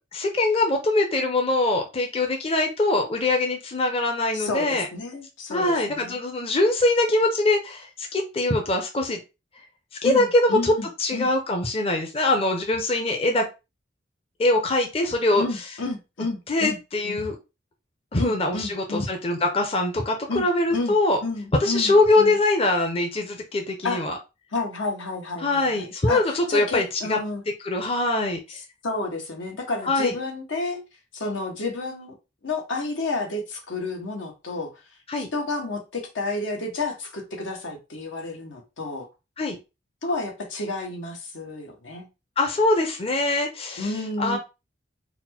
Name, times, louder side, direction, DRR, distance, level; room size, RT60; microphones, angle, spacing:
voice 1, 0.1-4.9 5.5-9.2 10.0-10.7 11.0-13.5 14.4-15.6 16.5-17.4 18.1-21.2 21.6-24.2 25.4-27.2 27.6-28.6 29.9-30.1 35.1-35.3 39.4-39.6 42.4-43.9 44.2-44.4, left 2 dB, 30° left, 0.6 m, -23 dB
voice 2, 4.3-6.2 10.0-11.3 15.3-16.8 17.0-17.2 18.2-19.1 20.3-21.0 21.2-22.4 23.8-24.1 24.5-26.2 26.5-27.4 28.8-30.8 31.1-32.1 32.4-34.7 35.3-39.1 40.0-42.1 43.8-44.4, left 3 dB, 85° left, 1.1 m, -30 dB
4.2 x 2.0 x 4.2 m
head